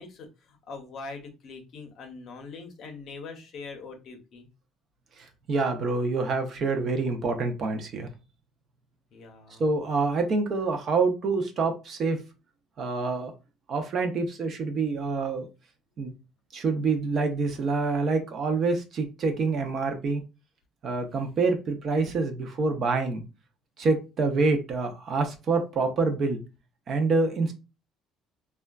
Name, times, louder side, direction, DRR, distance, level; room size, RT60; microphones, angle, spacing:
voice 1, 0.0-4.5 9.1-9.6, left 4 dB, 40° left, 0.6 m, -42 dB
voice 2, 5.2-8.1 9.6-12.2 12.8-13.3 13.7-15.5 16.0-16.1 16.5-20.2 20.8-23.2 23.8-26.4 26.9-27.5, right 3 dB, 35° right, 0.4 m, -26 dB
3.5 x 2.1 x 2.2 m
cardioid pair, 180°, 0 cm